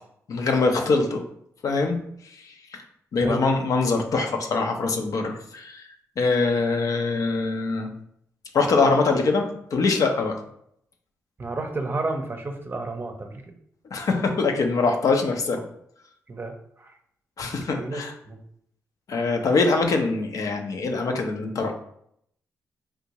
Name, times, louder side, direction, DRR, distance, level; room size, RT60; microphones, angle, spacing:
voice 1, 0.3-1.2 1.6-2.0 2.4-2.5 3.1-5.9 6.2-7.9 8.5-9.5 9.7-10.4 13.9-15.6 17.4-18.1 19.1-21.7, left 3 dB, 65° left, 3 dB, 0.6 m, -23 dB
voice 2, 3.2-3.5 11.4-13.4 16.3-16.9 17.8-18.4, right 2 dB, 35° right, 5 dB, 0.6 m, -31 dB
3.5 x 2.6 x 2.9 m, 0.70 s
supercardioid pair, 55°, 6 cm